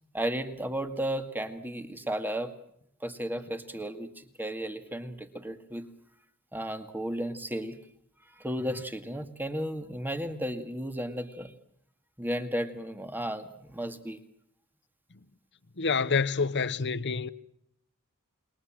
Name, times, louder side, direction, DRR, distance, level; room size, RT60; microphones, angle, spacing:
voice 1, 0.1-2.5 3.0-5.9 6.5-7.8 8.4-11.5 12.2-14.2, equal, 10° right, 2.1 m, -34 dB
voice 2, 15.8-17.3, left 5 dB, 55° left, 1.0 m, -27 dB
29.0 x 22.5 x 7.5 m
head